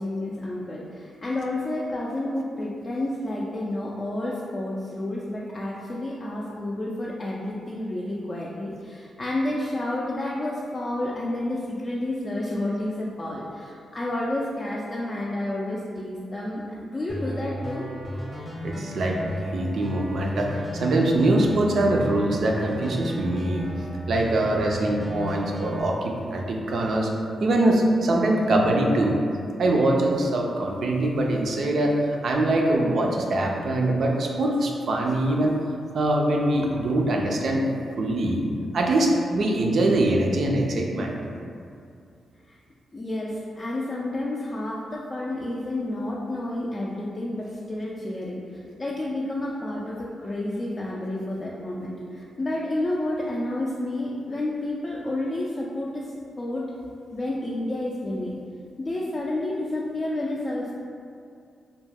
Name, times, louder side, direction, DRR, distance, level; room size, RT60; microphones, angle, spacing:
voice 1, 0.0-17.9 42.5-42.6 42.9-56.1 56.4-56.7 57.1-58.4 58.8-60.8, left 1 dB, 40° left, -5 dB, 0.3 m, -30 dB
sound 1, 17.1-25.8, right 1 dB, 5° right, 0.7 m, -34 dB
voice 2, 18.6-19.2 19.5-23.7 24.1-27.1 27.4-29.2 29.6-35.6 35.9-37.7 38.0-38.5 38.7-41.1, right 1 dB, 70° right, 0 dB, 0.3 m, -23 dB
2.3 x 2.1 x 3.3 m, 2.4 s
cardioid pair, 55°, 0 cm